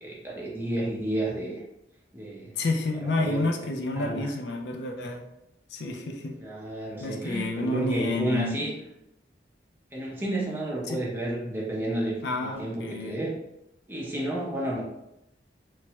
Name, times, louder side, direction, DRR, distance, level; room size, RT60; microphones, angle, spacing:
voice 1, 0.0-1.6 2.1-2.6 2.9-4.3 6.4-8.7 9.9-13.4 13.9-14.8, right 1 dB, 10° right, -4 dB, 0.6 m, -31 dB
voice 2, 2.6-5.2 5.7-6.4 7.0-8.7 10.9-11.0 12.2-13.2, left 2 dB, 70° left, 2 dB, 0.4 m, -29 dB
3.1 x 2.2 x 2.8 m, 0.84 s
head